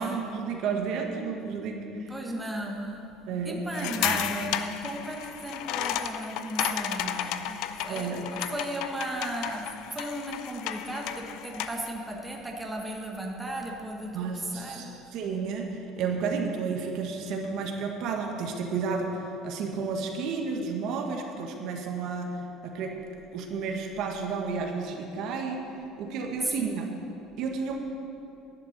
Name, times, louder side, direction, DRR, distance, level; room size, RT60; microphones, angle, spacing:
voice 1, 0.0-1.8 3.3-3.9 7.9-8.3 14.1-15.7 15.9-22.4 22.6-23.0 23.3-25.7 26.0-26.9 27.4-27.8, right 5 dB, 60° right, 2 dB, 1.4 m, -31 dB
voice 2, 1.9-3.1 3.4-15.0 26.4-26.9, right 1 dB, 10° right, 0 dB, 1.2 m, -35 dB
sound 1, 3.7-11.9, left 10 dB, 70° left, 0.5 m, -33 dB
11.0 x 7.6 x 7.2 m, 2.8 s
cardioid pair, 135°, 0 cm